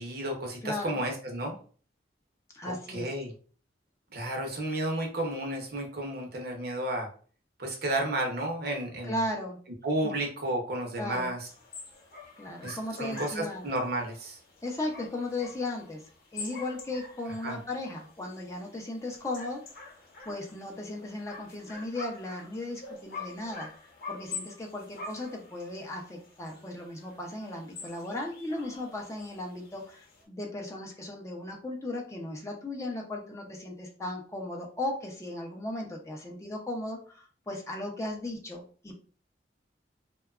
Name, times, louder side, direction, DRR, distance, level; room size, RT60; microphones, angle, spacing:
voice 1, 0.0-1.5 2.6-3.3 4.1-7.1 7.6-9.2 9.8-11.4 12.6-14.4 17.4-17.6, right 1 dB, 60° right, 2 dB, 0.7 m, -32 dB
voice 2, 0.6-1.0 2.5-3.1 9.0-9.6 11.0-11.3 12.4-13.7 14.6-16.0 16.3-19.6 20.3-38.9, left 1 dB, 15° left, 0 dB, 0.4 m, -36 dB
sound 1, 11.5-30.2, left 4 dB, 55° left, 0.7 m, -46 dB
2.7 x 2.2 x 2.3 m, 0.42 s
head